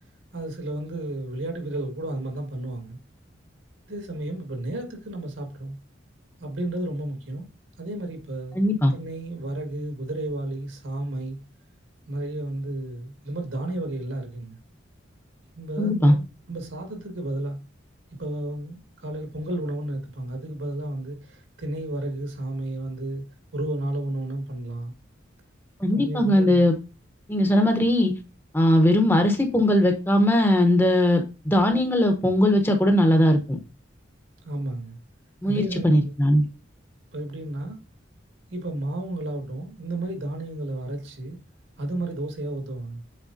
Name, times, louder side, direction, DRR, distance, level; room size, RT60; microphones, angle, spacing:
voice 1, 0.3-3.0 3.9-5.8 6.4-7.5 7.8-8.6 8.9-11.4 12.1-14.6 15.5-17.6 18.2-23.2 23.5-24.9 25.9-26.6 34.4-35.0 35.4-36.1 37.1-37.8 38.5-41.4 41.8-43.0, right 1 dB, 75° right, 1.9 m, -32 dB
voice 2, 8.5-8.9 15.8-16.1 25.8-26.7 27.3-28.1 28.5-33.6 35.4-36.4, left 1 dB, 10° left, 0.9 m, -19 dB
7.5 x 4.7 x 2.7 m
head